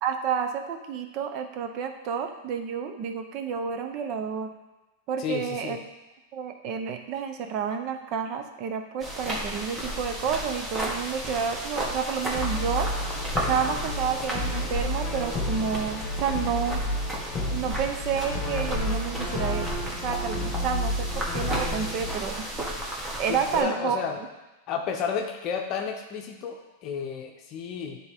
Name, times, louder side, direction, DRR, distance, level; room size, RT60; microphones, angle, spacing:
voice 1, 0.0-4.5 5.1-5.8 6.3-12.9 13.5-16.8 17.5-22.5 23.2-24.3, right 7 dB, 45° right, 7 dB, 0.8 m, -30 dB
voice 2, 5.2-5.8 23.3-24.2 24.7-28.0, left 6 dB, 40° left, 2 dB, 0.7 m, -32 dB
sound 1, 9.0-23.6, right 1 dB, 15° right, 1.4 m, -34 dB
Brass instrument, 12.3-22.2, left 1 dB, 20° left, 1.4 m, -31 dB
9.7 x 3.8 x 3.6 m, 1.1 s
supercardioid pair, 135°, 0 cm